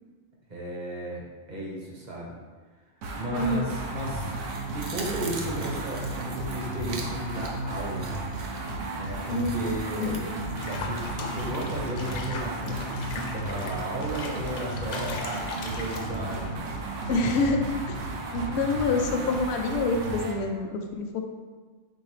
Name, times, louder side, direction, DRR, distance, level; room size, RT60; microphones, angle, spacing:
voice 1, 0.5-2.4 3.1-8.1 8.9-10.2 10.5-16.8, right 1 dB, 40° right, -3 dB, 0.9 m, -35 dB
sound 1, 3.0-20.4, right 2 dB, 80° right, 1.0 m, -33 dB
voice 2, 3.3-3.7 9.3-9.6 10.0-10.2 17.1-17.6 17.9-18.0 18.3-21.2, left 3 dB, 65° left, 3 dB, 0.8 m, -27 dB
sound 2, 4.2-11.6 12.0-12.1, right 4 dB, 60° right, 0.5 m, -44 dB
Water / Bathtub (filling or washing), 10.6-16.5, left 3 dB, 85° left, 1.0 m, -39 dB
4.5 x 3.5 x 3.2 m, 1.4 s
omnidirectional pair, 1.3 m